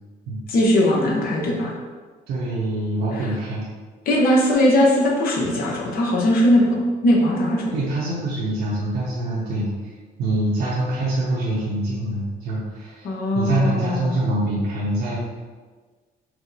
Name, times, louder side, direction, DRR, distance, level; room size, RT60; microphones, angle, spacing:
voice 1, 0.5-1.7 3.1-3.2 4.1-6.8 7.0-7.7 13.0-14.2, left 1 dB, 60° left, -2 dB, 0.9 m, -19 dB
voice 2, 2.3-3.6 7.7-9.7 10.2-13.1 13.3-15.2, right 1 dB, 70° right, -6 dB, 0.9 m, -24 dB
4.7 x 2.1 x 4.0 m, 1.4 s
cardioid pair, 110°, 17 cm